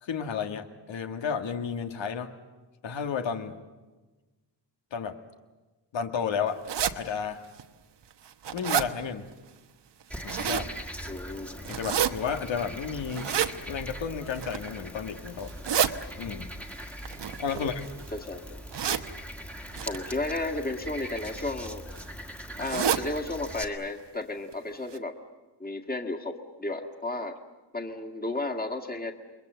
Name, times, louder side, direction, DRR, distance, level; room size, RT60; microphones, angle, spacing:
voice 1, 0.0-2.3 2.8-3.6 4.9-5.2 5.9-6.6 7.0-7.4 8.5-9.3 10.2-10.7 11.7-13.3 13.7-15.5 16.2-16.5 17.4-17.8, left 6 dB, 90° left, 5 dB, 1.9 m, -32 dB
sound 1, 6.7-6.9 7.6-7.7 8.1-8.9 10.0-10.7 11.6-12.1 13.1-13.5 14.3-14.7 15.4-15.9 17.0-18.0 18.7-19.1 19.7-20.0 21.0-21.3 21.6-21.7 21.9-22.0 22.6-23.0 23.5-23.6 23.8-23.9 24.5-24.6 24.9-25.0, right 9 dB, 70° right, 1.2 m, -28 dB
Frog, 10.1-23.6, equal, 5° left, 1.6 m, -41 dB
voice 2, 11.1-11.5 17.5-17.7 18.1-18.4 19.9-21.8 22.6-25.2 25.6-27.4 27.7-29.1, left 2 dB, 20° left, 4 dB, 1.9 m, -33 dB
29.5 x 22.5 x 8.0 m, 1.2 s
wide cardioid pair, 155°, 43 cm